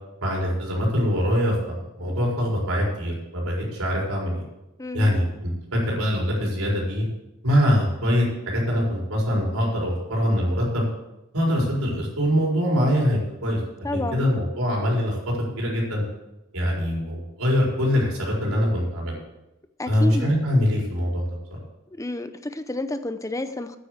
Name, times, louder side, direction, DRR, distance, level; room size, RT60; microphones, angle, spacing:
voice 1, 0.2-4.4 4.9-7.0 7.4-10.8 11.3-13.6 13.9-16.0 16.5-19.1 19.9-21.2, equal, 90° right, -2 dB, 4.6 m, -23 dB
voice 2, 4.8-5.1 13.8-14.3 19.8-20.3 22.0-23.8, left 2 dB, 15° left, 10 dB, 0.6 m, -30 dB
9.4 x 8.5 x 8.0 m, 0.94 s
head